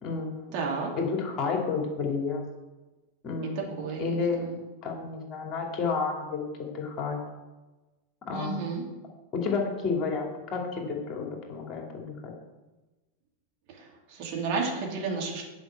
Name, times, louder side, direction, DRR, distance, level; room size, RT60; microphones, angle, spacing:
voice 1, 0.0-0.6 0.9-2.4 3.2-4.5 4.8-7.2 8.3-8.6 9.3-12.3, left 4 dB, 30° left, 1 dB, 2.4 m, -31 dB
voice 2, 0.5-0.9 3.8-4.6 8.3-8.8 13.7-15.4, right 4 dB, 45° right, -1 dB, 2.7 m, -32 dB
9.5 x 5.6 x 7.4 m, 1.1 s
figure-of-eight pair, 90°, 0 cm